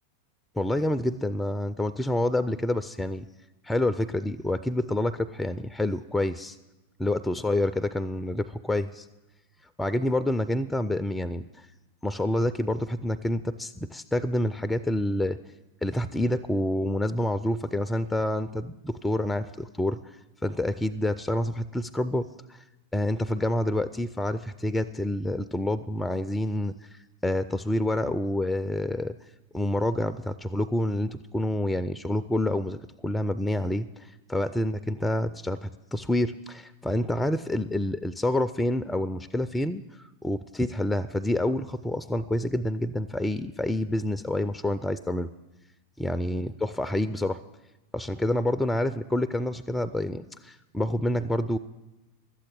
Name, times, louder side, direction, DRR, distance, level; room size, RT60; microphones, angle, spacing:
voice 1, 0.6-3.3 3.6-6.6 7.0-9.1 9.8-11.7 12.0-15.4 15.8-20.2 20.4-22.6 22.9-29.2 29.5-32.8 33.0-45.3 46.0-47.4 47.9-51.6, left 1 dB, 5° left, 11 dB, 0.4 m, -28 dB
12.0 x 8.6 x 8.8 m, 1.0 s
figure-of-eight pair, 90°, 0 cm